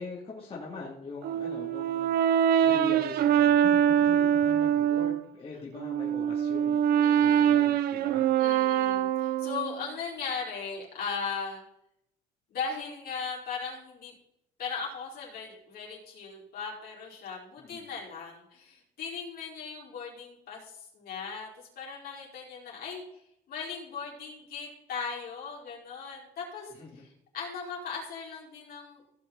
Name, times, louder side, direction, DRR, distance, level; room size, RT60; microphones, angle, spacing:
voice 1, 0.0-8.3 17.6-17.9 26.7-27.0, left 4 dB, 35° left, -5 dB, 3.1 m, -42 dB
Brass instrument, 1.2-5.2 5.8-9.8, right 9 dB, 65° right, 0.7 m, -24 dB
voice 2, 7.0-7.6 8.4-11.6 12.5-14.1 14.6-23.0 23.5-26.7 27.3-29.0, left 5 dB, 65° left, -3 dB, 5.1 m, -38 dB
17.0 x 6.7 x 4.2 m, 0.79 s
cardioid pair, 110°, 17 cm